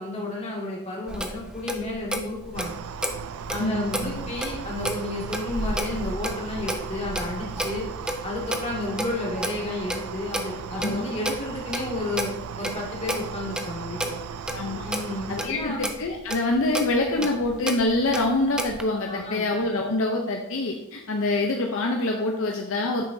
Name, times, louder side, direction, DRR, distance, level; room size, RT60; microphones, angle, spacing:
voice 1, 0.0-2.8 3.5-7.9 8.2-12.3 12.6-14.2 14.8-15.8 17.2-17.3 19.1-19.4, left 2 dB, 30° left, -4 dB, 2.2 m, -32 dB
Clock, 1.1-18.8, right 1 dB, 5° right, 0.5 m, -33 dB
sound 1, 2.5-15.5, right 7 dB, 75° right, 0.3 m, -37 dB
voice 2, 3.6-4.2 10.7-11.0 14.5-14.9 15.3-23.0, left 2 dB, 60° left, 1 dB, 0.7 m, -25 dB
8.5 x 6.8 x 2.7 m, 0.88 s
head